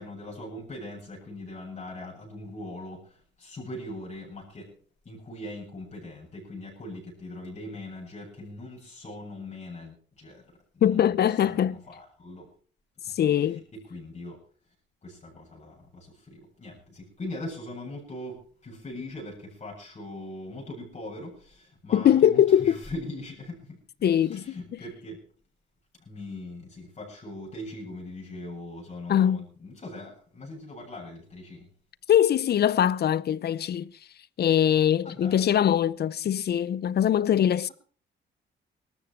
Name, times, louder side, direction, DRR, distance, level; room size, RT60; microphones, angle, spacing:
voice 1, 0.0-4.7 5.0-12.5 13.1-13.2 13.5-14.4 15.0-23.8 24.2-25.2 26.0-31.7 35.0-35.4, left 1 dB, 35° left, 7.9 m, -41 dB
voice 2, 10.8-11.8 13.1-13.6 21.9-22.7 24.0-24.5 29.1-29.4 32.1-33.9 34.4-37.7, left 10 dB, 55° left, 0.7 m, -22 dB
18.5 x 13.5 x 4.6 m
cardioid pair, 90°, 20 cm